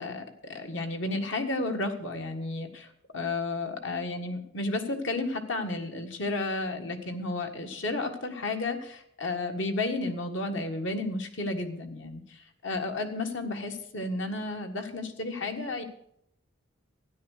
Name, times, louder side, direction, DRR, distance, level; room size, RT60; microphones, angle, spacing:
voice 1, 0.0-15.8, left 2 dB, 65° left, 5 dB, 1.7 m, -32 dB
13.0 x 10.5 x 6.6 m, 0.70 s
head